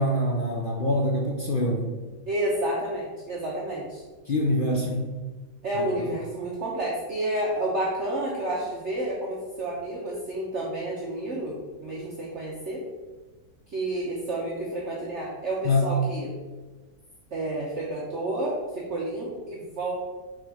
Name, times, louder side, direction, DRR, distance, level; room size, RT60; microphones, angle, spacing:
voice 1, 0.0-1.9 4.3-5.1 5.7-5.8 15.6-15.9, left 1 dB, 55° left, 0 dB, 0.6 m, -25 dB
voice 2, 2.3-4.0 5.6-11.5 11.8-12.8 13.7-16.3 17.3-19.9, right 1 dB, 45° right, -5 dB, 1.2 m, -30 dB
6.5 x 3.8 x 4.9 m, 1.3 s
omnidirectional pair, 1.8 m